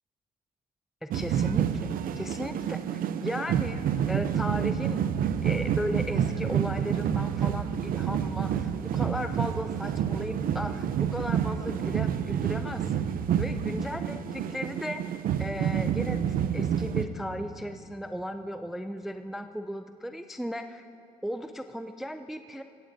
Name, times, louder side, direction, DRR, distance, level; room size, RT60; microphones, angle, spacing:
voice 1, 1.0-1.9 2.2-3.8 4.1-13.0 13.4-15.0 15.4-16.2 16.5-20.8 21.2-22.6, equal, ahead, 8 dB, 0.3 m, -36 dB
sound 1, 1.1-17.0, right 8 dB, 60° right, 0.6 m, -28 dB
16.0 x 15.0 x 2.7 m, 2.9 s
cardioid pair, 110°, 17 cm